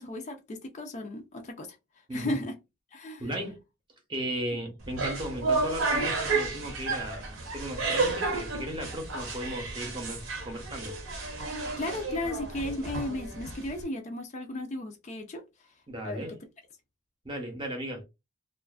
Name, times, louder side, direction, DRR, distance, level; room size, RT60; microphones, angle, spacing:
voice 1, 0.0-2.6 2.9-3.3 11.8-16.4, left 1 dB, 35° left, 0.3 m, -35 dB
voice 2, 3.2-3.6 4.1-11.0 15.9-16.3 17.2-18.0, right 1 dB, 25° right, 0.7 m, -36 dB
sound 1, 4.8-13.8, right 3 dB, 75° right, 0.8 m, -32 dB
2.4 x 2.3 x 2.3 m
head